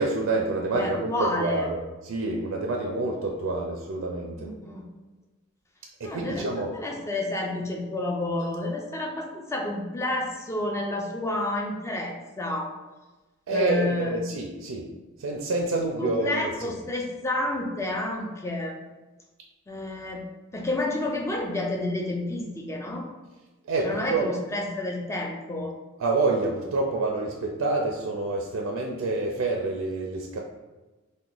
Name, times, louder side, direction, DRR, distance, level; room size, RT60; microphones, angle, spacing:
voice 1, 0.0-4.5 6.0-6.7 13.5-14.9 15.2-16.7 23.7-24.3 26.0-30.4, right 2 dB, 75° right, 0 dB, 0.4 m, -27 dB
voice 2, 0.7-1.7 4.4-4.9 6.0-12.7 13.5-14.3 16.0-18.7 19.7-20.3 20.5-23.1 23.8-25.7, left 2 dB, 15° left, 0 dB, 0.4 m, -30 dB
2.9 x 2.2 x 3.7 m, 1.2 s
head